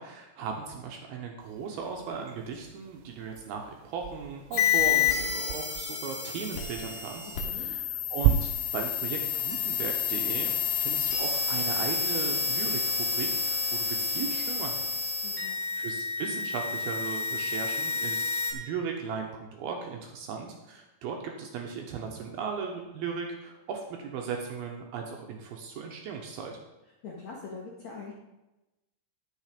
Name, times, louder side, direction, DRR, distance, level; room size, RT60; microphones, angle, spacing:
voice 1, 0.0-15.1 15.8-26.6, right 6 dB, 75° right, 2 dB, 2.5 m, -37 dB
sound 1, 1.4-15.1, right 10 dB, 90° right, 3.0 m, -37 dB
sound 2, 4.5-18.5, left 6 dB, 60° left, 2.6 m, -29 dB
voice 2, 7.4-7.8 15.2-15.6 27.0-28.1, left 4 dB, 75° left, -2 dB, 1.6 m, -42 dB
11.5 x 6.7 x 5.1 m, 0.98 s
omnidirectional pair, 5.3 m